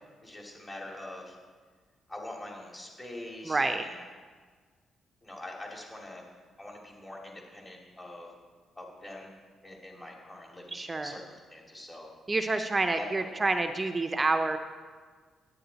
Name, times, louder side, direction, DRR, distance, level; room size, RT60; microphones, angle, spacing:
voice 1, 0.2-1.4 2.1-3.9 5.2-6.2 6.6-8.3 8.8-9.3 9.6-10.7 11.0-12.1 12.9-13.6, left 1 dB, 20° left, -1 dB, 2.4 m, -44 dB
voice 2, 3.4-3.9 10.7-11.2 12.3-14.6, right 3 dB, 20° right, 7 dB, 0.5 m, -28 dB
10.0 x 9.4 x 4.0 m, 1.5 s
cardioid pair, 100°, 0 cm